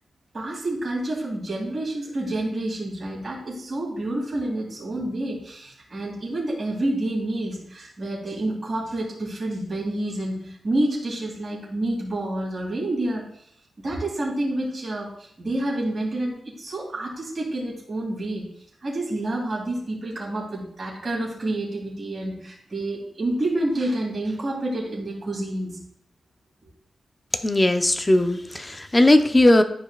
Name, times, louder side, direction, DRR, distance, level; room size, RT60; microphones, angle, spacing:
voice 1, 0.3-13.2 13.8-25.8, right 1 dB, 40° right, -4 dB, 2.7 m, -28 dB
voice 2, 27.4-29.6, left 1 dB, 20° left, 8 dB, 0.7 m, -18 dB
11.0 x 5.1 x 2.4 m, 0.69 s
cardioid pair, 85°, 0 cm